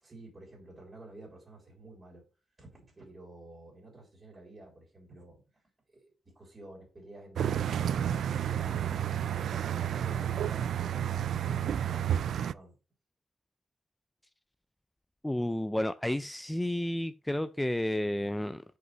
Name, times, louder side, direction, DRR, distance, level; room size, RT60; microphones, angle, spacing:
voice 1, 0.0-2.2 2.6-5.6 5.9-9.4 10.0-12.8, right 2 dB, 25° right, 3.5 m, -51 dB
sound 1, 7.4-12.5, right 9 dB, 70° right, 0.3 m, -30 dB
voice 2, 15.2-18.6, left 1 dB, 5° left, 0.4 m, -31 dB
6.1 x 5.4 x 6.6 m
cardioid pair, 130°, 0 cm